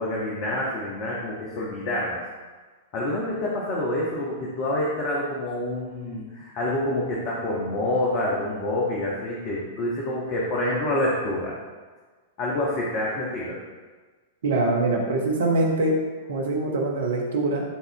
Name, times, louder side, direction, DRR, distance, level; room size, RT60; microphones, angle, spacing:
voice 1, 0.0-2.2 2.9-11.5 12.4-13.6, left 1 dB, 40° left, -4 dB, 1.5 m, -27 dB
voice 2, 14.4-16.0 16.3-17.6, right 2 dB, 60° right, 0 dB, 1.4 m, -23 dB
12.5 x 4.3 x 3.5 m, 1.4 s
figure-of-eight pair, 100°, 0 cm